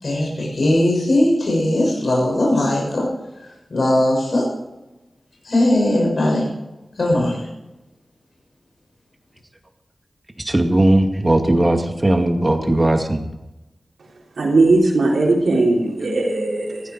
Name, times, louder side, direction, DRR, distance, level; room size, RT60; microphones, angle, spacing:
voice 1, 0.0-3.1 3.4-4.5 5.4-6.5 7.0-7.5, left 1 dB, 65° left, -2 dB, 6.4 m, -19 dB
voice 2, 10.4-13.2, right 1 dB, 25° right, 4 dB, 2.2 m, -17 dB
voice 3, 14.4-16.8, right 2 dB, 85° right, -2 dB, 3.6 m, -18 dB
16.0 x 14.5 x 4.7 m, 1.0 s
wide cardioid pair, 60°, 0 cm